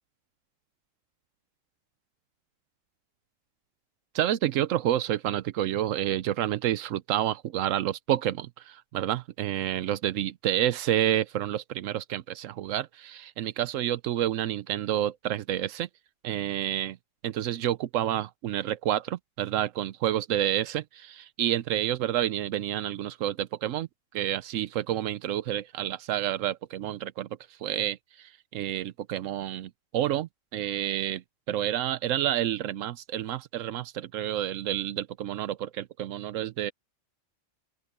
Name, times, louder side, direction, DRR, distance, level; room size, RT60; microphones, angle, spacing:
voice 1, 4.1-15.9 16.2-17.0 17.2-23.9 24.1-27.3 27.6-31.2 31.5-36.7, right 11 dB, 85° right, 1.0 m, -29 dB
open air
omnidirectional pair, 1.3 m